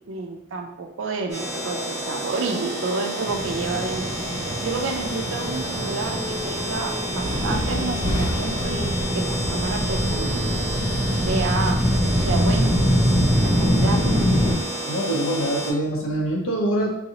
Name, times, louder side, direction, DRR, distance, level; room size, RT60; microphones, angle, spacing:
voice 1, 0.1-4.0 4.6-10.5 11.3-11.9 12.2-12.7 13.4-14.3, right 3 dB, 60° right, 3 dB, 0.4 m, -29 dB
sound 1, 1.3-15.7, right 1 dB, 30° right, 1.5 m, -30 dB
sound 2, 3.3-14.5, equal, 20° left, 0.6 m, -24 dB
voice 2, 14.9-17.0, right 1 dB, 65° left, -1 dB, 0.9 m, -24 dB
3.8 x 2.8 x 2.9 m, 0.90 s
head